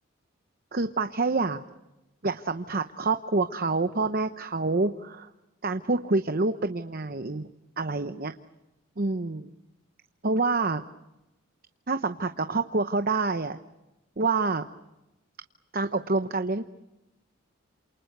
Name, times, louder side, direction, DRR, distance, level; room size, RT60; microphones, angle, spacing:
voice 1, 0.7-1.6 2.2-5.3 5.6-7.5 7.8-8.3 9.0-9.5 10.2-10.8 11.9-13.6 14.2-14.6 15.7-16.6, right 3 dB, 45° right, 8 dB, 0.8 m, -27 dB
28.5 x 28.0 x 6.7 m, 0.99 s
head